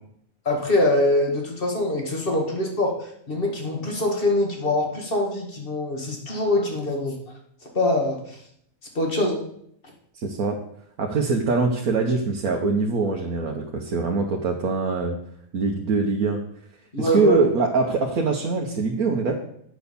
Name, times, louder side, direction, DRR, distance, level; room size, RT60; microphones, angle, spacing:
voice 1, 0.5-7.2 7.7-8.4 8.9-9.4 16.9-17.4, left 1 dB, 40° left, 1 dB, 2.2 m, -23 dB
voice 2, 10.1-10.6 11.0-15.2 15.5-16.4 17.0-19.4, right 3 dB, 75° right, 1 dB, 1.5 m, -23 dB
9.0 x 6.3 x 7.0 m, 0.70 s
omnidirectional pair, 1.5 m